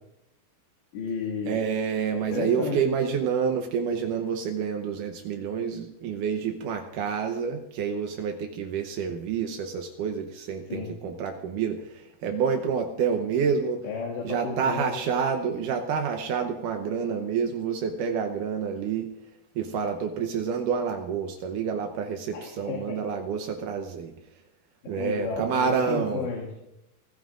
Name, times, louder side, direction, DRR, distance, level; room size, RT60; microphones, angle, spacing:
voice 1, 0.9-1.6 2.1-2.8 10.7-10.9 13.8-14.9 22.3-23.0 24.9-26.5, left 5 dB, 80° left, -3 dB, 4.4 m, -32 dB
voice 2, 1.5-11.8 12.2-13.8 14.2-19.1 19.6-24.1 24.9-26.3, right 6 dB, 80° right, 4 dB, 1.8 m, -28 dB
25.5 x 16.5 x 2.6 m, 0.86 s
omnidirectional pair, 5.0 m